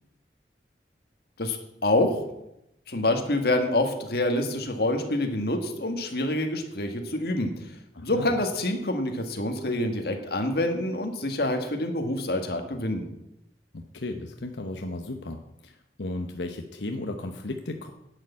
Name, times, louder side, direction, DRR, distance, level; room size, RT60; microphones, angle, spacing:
voice 1, 1.4-2.2 2.9-7.5 8.0-13.1, left 1 dB, 60° left, 5 dB, 1.8 m, -26 dB
voice 2, 7.9-8.3 13.7-17.9, left 2 dB, 90° left, 5 dB, 0.9 m, -35 dB
11.0 x 6.7 x 8.4 m, 0.85 s
head